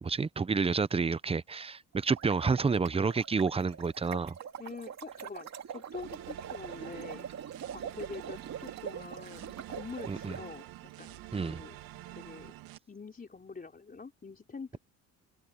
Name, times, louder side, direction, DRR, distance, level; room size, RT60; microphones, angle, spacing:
voice 1, 0.0-4.4 10.1-10.3 11.3-11.6, right 5 dB, 15° right, 0.7 m, -29 dB
sound 1, 1.9-10.4, right 8 dB, 50° right, 2.3 m, -43 dB
voice 2, 4.6-7.3 7.7-10.7 11.0-11.8 12.1-12.5 12.9-14.8, left 4 dB, 25° left, 4.3 m, -45 dB
sound 2, 5.9-12.8, right 16 dB, 80° right, 2.6 m, -48 dB
supercardioid pair, 90°, 36 cm